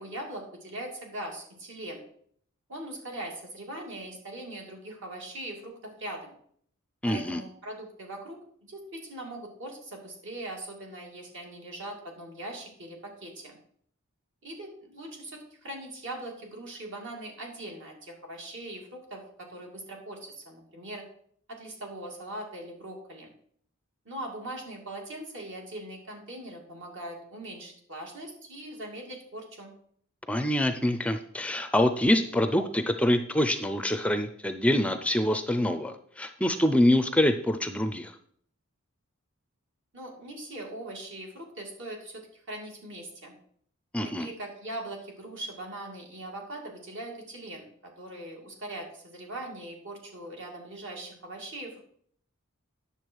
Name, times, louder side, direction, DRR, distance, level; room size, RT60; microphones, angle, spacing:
voice 1, 0.0-2.0 2.7-6.3 7.0-13.6 14.4-21.0 21.5-23.3 24.0-29.7 39.9-43.4 44.0-51.8, right 1 dB, 60° right, 1 dB, 2.6 m, -41 dB
voice 2, 7.0-7.4 30.3-38.1 43.9-44.3, left 1 dB, 5° left, 8 dB, 0.4 m, -25 dB
9.9 x 6.9 x 4.6 m, 0.62 s
head